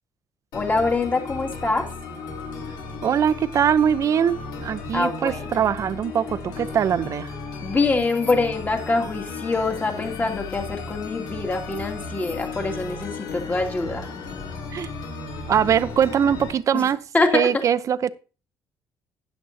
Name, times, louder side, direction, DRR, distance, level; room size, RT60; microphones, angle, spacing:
sound 1, 0.5-16.5, left 4 dB, 80° left, 2.9 m, -35 dB
voice 1, 0.5-1.9 4.9-5.5 7.6-14.1 16.7-16.9 17.1-17.4, left 3 dB, 25° left, 2.3 m, -24 dB
voice 2, 3.0-7.3 14.7-14.9 15.5-17.0 17.3-18.1, right 8 dB, 50° right, 0.7 m, -22 dB
12.5 x 10.0 x 2.8 m
cardioid pair, 105°, 7 cm